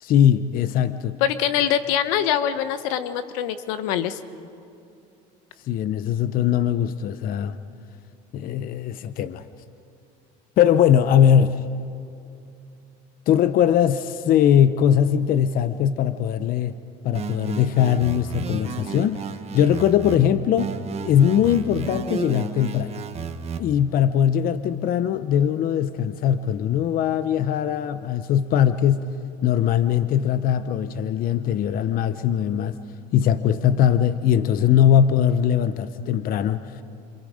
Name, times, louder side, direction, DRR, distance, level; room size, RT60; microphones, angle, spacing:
voice 1, 0.0-1.2 5.7-7.6 8.3-9.4 10.6-11.6 13.3-16.7 17.0-19.2 19.5-20.7 21.0-22.9 23.6-29.1 29.4-32.8 33.1-36.6, left 9 dB, 55° left, 12 dB, 0.8 m, -20 dB
voice 2, 1.2-4.2, left 10 dB, 85° left, 11 dB, 1.1 m, -24 dB
sound 1, 17.1-20.2 20.6-23.6, right 6 dB, 35° right, 1.4 m, -33 dB
28.5 x 27.0 x 5.1 m, 2.7 s
supercardioid pair, 105°, 18 cm